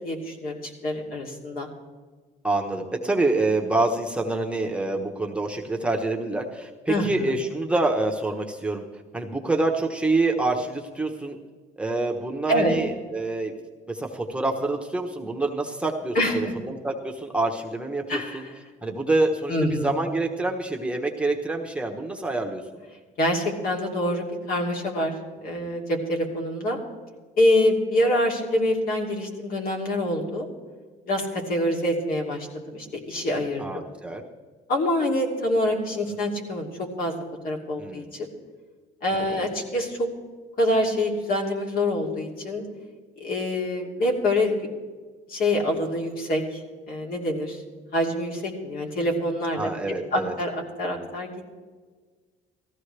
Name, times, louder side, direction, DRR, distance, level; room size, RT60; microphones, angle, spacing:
voice 1, 0.0-1.7 6.9-7.3 12.5-12.7 16.1-16.5 18.1-18.5 19.5-19.9 23.2-25.1 25.4-26.8 27.4-30.5 31.1-32.5 32.7-33.8 34.7-36.7 37.0-37.1 37.4-38.3 39.0-40.1 40.6-42.6 43.2-44.7 45.3-46.6 46.9-47.6 47.9-49.7 50.1-50.5 50.8-51.3, left 1 dB, 60° left, 0 dB, 2.9 m, -25 dB
voice 2, 2.4-8.8 9.1-11.4 11.8-13.5 13.9-18.4 18.8-22.8 33.6-34.2 37.8-38.1 39.3-39.5 49.6-50.3, right 2 dB, 5° right, 1 dB, 1.1 m, -26 dB
18.0 x 14.5 x 3.4 m, 1.4 s
cardioid pair, 110°, 17 cm